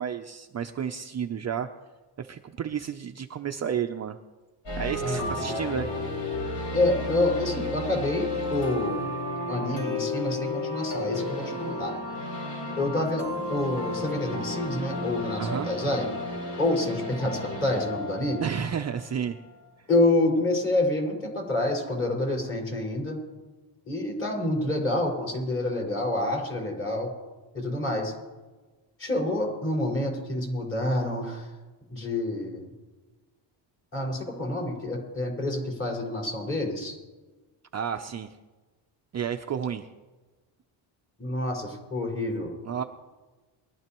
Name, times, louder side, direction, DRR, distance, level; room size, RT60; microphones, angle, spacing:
voice 1, 0.0-1.7 2.2-4.2 4.8-5.9 15.4-15.7 18.4-19.4 19.8-19.9 37.7-38.4 39.1-39.9 42.6-42.8, right 8 dB, 35° right, 5 dB, 0.6 m, -31 dB
sound 1, 4.7-19.5, left 1 dB, 60° left, 5.4 m, -33 dB
voice 2, 5.0-5.6 6.7-9.0 9.5-11.9 12.8-16.1 16.6-18.5 19.9-23.2 23.9-27.1 27.5-28.1 29.0-31.5 31.9-32.7 33.9-37.0 41.2-42.5, left 2 dB, 25° left, -3 dB, 5.4 m, -28 dB
23.0 x 12.5 x 3.0 m, 1.3 s
cardioid pair, 120°, 48 cm